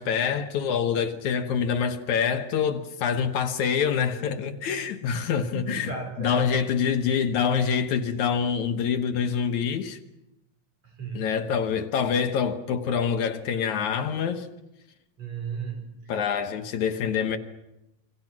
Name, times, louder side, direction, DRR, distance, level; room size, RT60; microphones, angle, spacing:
voice 1, 0.0-5.9 6.2-10.0 11.1-14.5 16.1-17.4, left 7 dB, 70° left, 2.5 m, -26 dB
voice 2, 5.4-6.5 10.8-11.4 15.2-16.1, right 4 dB, 55° right, 6.0 m, -35 dB
29.0 x 24.5 x 6.0 m
omnidirectional pair, 3.7 m